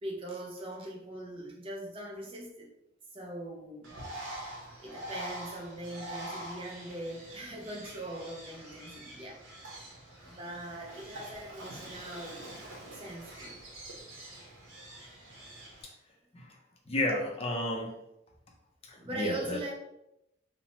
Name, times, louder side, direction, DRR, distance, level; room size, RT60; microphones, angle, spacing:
voice 1, 0.0-2.7 3.1-4.0 4.8-9.4 10.2-12.4 12.9-13.6 19.0-19.7, right 1 dB, 30° right, -1 dB, 0.5 m, -41 dB
Bird, 3.8-15.8, right 1 dB, 80° right, 0.7 m, -45 dB
voice 2, 16.9-17.9 18.9-19.6, left 1 dB, 30° left, 0 dB, 0.4 m, -32 dB
2.8 x 2.0 x 2.8 m, 0.87 s
head